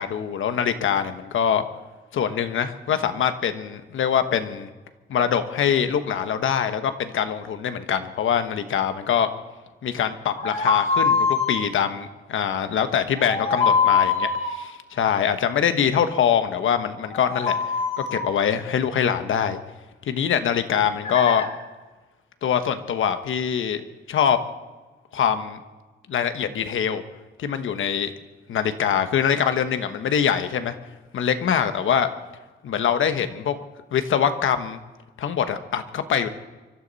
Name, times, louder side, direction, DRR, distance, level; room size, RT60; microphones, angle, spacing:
voice 1, 0.0-1.6 2.1-4.7 5.1-9.3 9.8-17.6 18.0-19.6 20.1-21.5 22.4-23.8 24.1-24.4 25.1-25.6 26.1-27.0 27.4-28.1 28.5-30.7 31.1-32.1 32.6-33.6 33.9-34.8 35.2-36.3, left 8 dB, 85° left, 9 dB, 1.2 m, -23 dB
sound 1, 10.3-11.6 13.2-14.6 17.0-18.3 21.0-21.5, left 5 dB, 30° left, 2.2 m, -23 dB
25.0 x 13.5 x 4.1 m, 1.2 s
wide cardioid pair, 160°, 20 cm